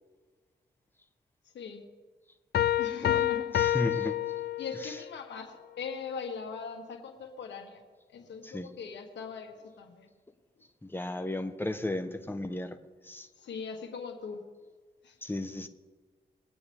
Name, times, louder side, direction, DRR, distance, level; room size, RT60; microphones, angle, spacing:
sound 1, 2.5-5.0, left 12 dB, 65° left, 0.4 m, -28 dB
voice 1, 2.8-3.5 4.6-7.8 8.1-10.1 13.4-14.4 15.0-15.1, left 5 dB, 90° left, 4 dB, 1.6 m, -40 dB
voice 2, 3.5-4.1 8.4-8.7 10.8-12.8 13.1-13.3 15.2-15.7, left 1 dB, 10° left, 7 dB, 1.1 m, -34 dB
22.0 x 9.0 x 3.6 m, 1.4 s
cardioid pair, 70°, 18 cm